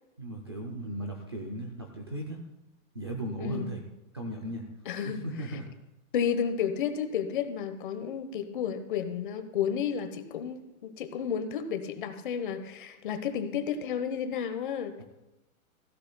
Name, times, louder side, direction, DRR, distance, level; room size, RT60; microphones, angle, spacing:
voice 1, 0.2-2.4 2.9-3.8 4.1-4.7 5.0-5.7, right 1 dB, 20° right, 1 dB, 0.4 m, -36 dB
voice 2, 3.4-3.7 4.8-5.2 5.5-5.6 6.1-15.0, left 8 dB, 35° left, 9 dB, 1.0 m, -32 dB
17.0 x 15.5 x 2.2 m, 0.98 s
hypercardioid pair, 175°, 43 cm